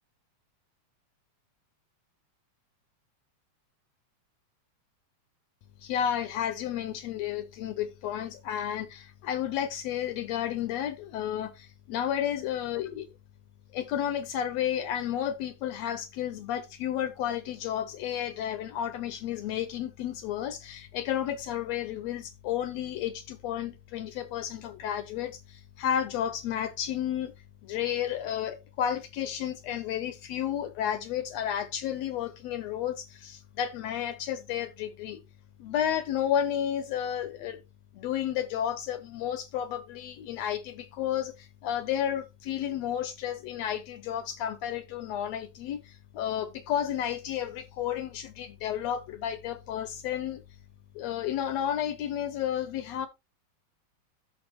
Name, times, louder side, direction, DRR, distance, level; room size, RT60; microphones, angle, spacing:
voice 1, 5.8-13.1 13.7-27.3 27.6-35.2 35.6-37.6 37.9-50.4 50.9-53.1, left 10 dB, 75° left, 1.6 m, -32 dB
14.0 x 5.7 x 3.0 m
omnidirectional pair, 3.4 m